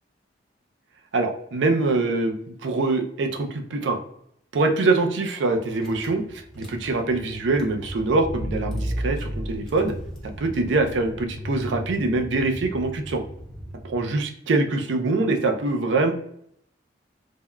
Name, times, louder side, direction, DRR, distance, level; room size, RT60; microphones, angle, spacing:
voice 1, 1.1-4.0 4.5-9.9 10.4-13.2 13.8-16.1, right 3 dB, 75° right, 5 dB, 0.4 m, -24 dB
Car / Engine, 5.8-14.2, equal, 5° left, 0.5 m, -34 dB
3.4 x 2.1 x 2.2 m, 0.70 s
head